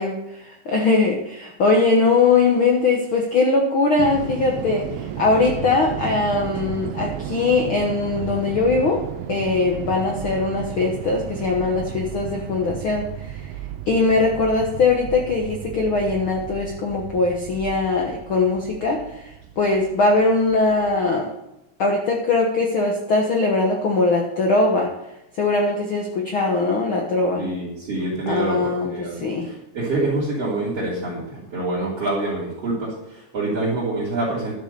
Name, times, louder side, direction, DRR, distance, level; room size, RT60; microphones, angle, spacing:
voice 1, 0.0-9.0 9.3-13.5 13.9-19.3 19.6-21.3 21.8-24.9 25.3-27.4 28.3-29.5, left 3 dB, 75° left, 1 dB, 1.2 m, -21 dB
sound 1, 4.0-21.1, right 11 dB, 85° right, 2.5 m, -34 dB
voice 2, 27.4-34.5, right 2 dB, 40° right, -9 dB, 3.9 m, -26 dB
12.0 x 7.1 x 6.7 m, 0.89 s
omnidirectional pair, 4.3 m